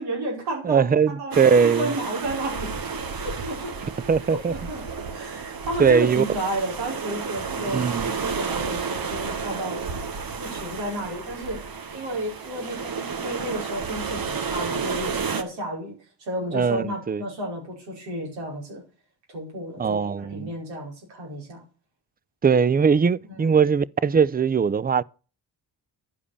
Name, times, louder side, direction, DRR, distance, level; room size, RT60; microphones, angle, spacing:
voice 1, 0.0-3.8 4.3-4.8 5.1-9.8 10.4-11.6 11.9-18.8 19.3-21.6 23.3-23.6, right 1 dB, 90° right, 5.4 m, -32 dB
voice 2, 0.7-1.9 4.1-4.5 5.8-6.2 7.7-8.1 16.5-17.2 19.8-20.5 22.4-25.0, right 6 dB, 20° right, 0.5 m, -20 dB
sound 1, 1.3-15.4, right 5 dB, 55° right, 1.6 m, -31 dB
11.0 x 5.1 x 8.4 m
supercardioid pair, 50°, 43 cm